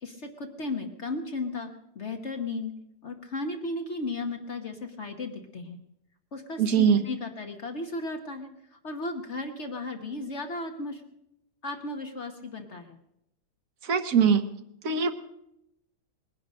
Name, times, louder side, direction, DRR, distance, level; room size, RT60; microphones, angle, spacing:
voice 1, 0.0-2.7 3.0-5.8 6.3-11.0 11.6-13.0, left 2 dB, 50° left, 4 dB, 1.4 m, -35 dB
voice 2, 6.6-7.0 13.8-14.4 14.8-15.1, right 7 dB, 60° right, 10 dB, 1.5 m, -22 dB
20.0 x 10.5 x 6.4 m, 0.83 s
omnidirectional pair, 1.7 m